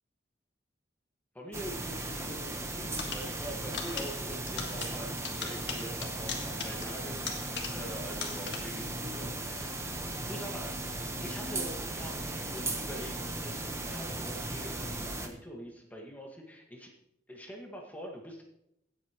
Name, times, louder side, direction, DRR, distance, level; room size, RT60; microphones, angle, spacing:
voice 1, 1.3-10.8 11.2-16.9 17.3-18.4, equal, 10° left, 0 dB, 1.7 m, -44 dB
sound 1, 1.5-15.3, right 2 dB, 15° right, 1.1 m, -37 dB
sound 2, 3.0-8.9, left 6 dB, 70° left, 1.7 m, -40 dB
17.0 x 8.2 x 3.1 m, 0.80 s
head